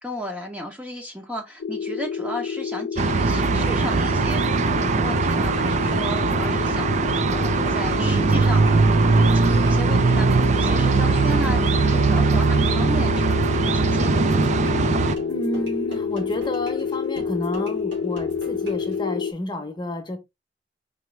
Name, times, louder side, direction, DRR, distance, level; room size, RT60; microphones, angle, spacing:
voice 1, 0.0-14.5, equal, 10° right, 0.7 m, -34 dB
sound 1, 1.6-19.3, left 6 dB, 70° left, 0.3 m, -28 dB
sound 2, 3.0-15.1, right 4 dB, 40° right, 0.4 m, -20 dB
sound 3, 3.2-19.2, right 2 dB, 70° right, 2.6 m, -42 dB
voice 2, 15.2-20.2, left 1 dB, 25° left, 0.9 m, -30 dB
5.0 x 2.9 x 3.2 m
head